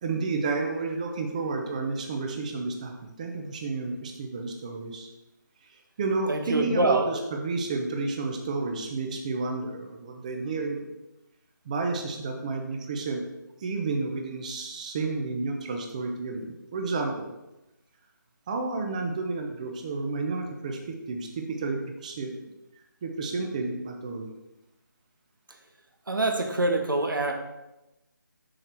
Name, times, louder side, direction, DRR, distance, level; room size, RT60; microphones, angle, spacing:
voice 1, 0.0-5.1 6.0-10.8 11.6-13.2 13.6-17.3 18.5-20.8 21.1-22.3 23.0-24.3, right 3 dB, 20° right, 3 dB, 0.8 m, -31 dB
voice 2, 6.3-7.1 26.1-27.3, right 2 dB, 80° right, 4 dB, 1.3 m, -25 dB
6.5 x 5.9 x 4.4 m, 0.96 s
figure-of-eight pair, 165°, 11 cm